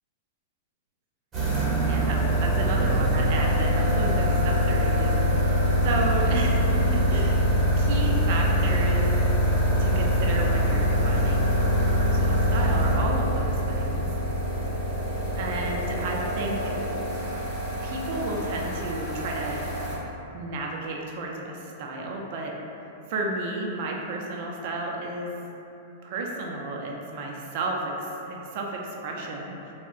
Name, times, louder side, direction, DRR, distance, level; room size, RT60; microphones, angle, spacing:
sound 1, 1.3-20.0, equal, 20° right, 1.1 m, -24 dB
voice 1, 1.8-5.4 5.8-9.1 9.8-11.5 11.7-14.1 15.3-16.6 17.8-19.6 20.3-22.6 23.1-25.3 26.0-29.7, right 2 dB, 55° right, -1 dB, 0.4 m, -32 dB
3.5 x 2.1 x 2.3 m, 2.8 s
hypercardioid pair, 125°, 0 cm